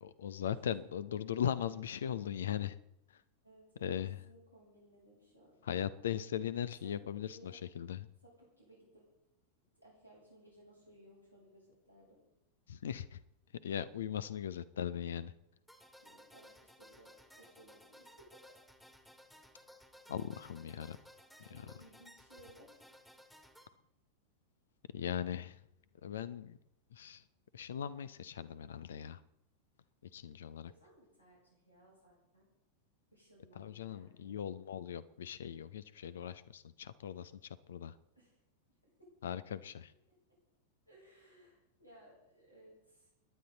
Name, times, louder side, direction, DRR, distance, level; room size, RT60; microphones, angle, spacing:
voice 1, 0.2-2.7 3.8-4.2 5.7-8.1 12.7-13.2 13.6-15.3 20.1-21.0 24.9-25.6 26.0-26.6 26.9-27.2 27.5-29.2 30.1-30.7 33.6-37.9 39.2-39.9, left 9 dB, 65° left, 16 dB, 0.8 m, -39 dB
voice 2, 3.4-5.6 6.8-7.6 8.2-9.0 9.8-12.2 16.0-18.4 21.5-22.8 30.7-32.5 33.1-34.4 38.1-38.4 39.0-39.1 40.1-40.2 40.9-43.1, right 1 dB, 90° left, -5 dB, 7.5 m, -61 dB
sound 1, 15.7-23.7, equal, ahead, 1.8 m, -59 dB
29.5 x 10.5 x 4.1 m, 0.84 s
figure-of-eight pair, 90°, 0 cm